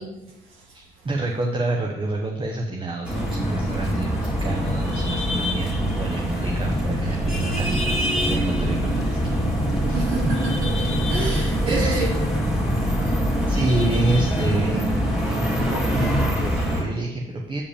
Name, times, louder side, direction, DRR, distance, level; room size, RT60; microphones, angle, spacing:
voice 1, 0.0-1.1 9.9-12.3 13.0-13.3, right 3 dB, 85° right, -1 dB, 1.5 m, -30 dB
voice 2, 0.7-9.5 9.8-10.0 10.2-10.3 11.6-12.0 13.5-17.6, right 2 dB, 25° right, 1 dB, 0.8 m, -27 dB
sound 1, 3.0-16.8, equal, ahead, 2.1 m, -24 dB
7.1 x 4.8 x 5.0 m, 1.1 s
cardioid pair, 90°, 20 cm